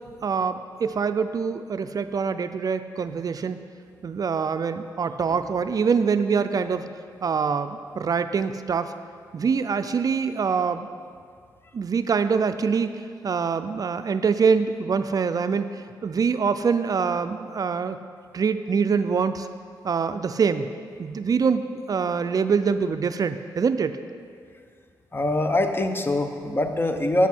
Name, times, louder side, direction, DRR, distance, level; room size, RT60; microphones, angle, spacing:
voice 1, 0.2-3.6 4.0-6.9 7.2-8.9 9.3-10.9 11.7-18.0 18.3-19.5 19.8-20.7 21.0-24.0, right 5 dB, 50° right, 10 dB, 0.4 m, -24 dB
voice 2, 25.1-27.3, left 1 dB, 30° left, 6 dB, 0.7 m, -23 dB
8.4 x 8.0 x 4.4 m, 2.1 s
cardioid pair, 70°, 8 cm